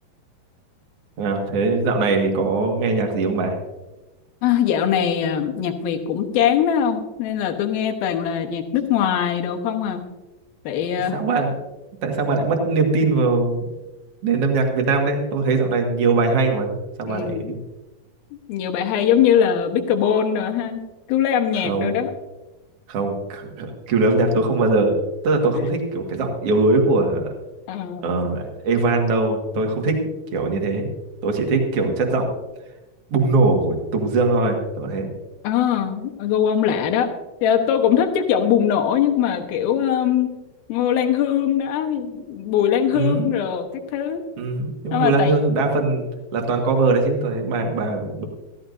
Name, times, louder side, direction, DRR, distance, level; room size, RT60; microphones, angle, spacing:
voice 1, 1.2-3.6 11.1-11.5 12.0-13.6 14.2-17.4 21.6-22.0 22.9-25.0 25.2-27.3 28.0-30.0 30.3-30.9 31.2-32.3 33.1-35.1 42.9-43.4 44.4-46.0 46.3-48.2, right 3 dB, 50° right, 2 dB, 2.2 m, -21 dB
voice 2, 4.4-10.0 10.6-11.2 17.1-17.5 18.5-20.8 21.1-22.1 25.6-25.7 27.7-28.1 35.4-37.1 37.4-40.3 40.7-44.2 44.9-45.3, left 9 dB, 85° left, 4 dB, 2.9 m, -21 dB
16.0 x 14.5 x 2.6 m, 1.1 s
omnidirectional pair, 4.3 m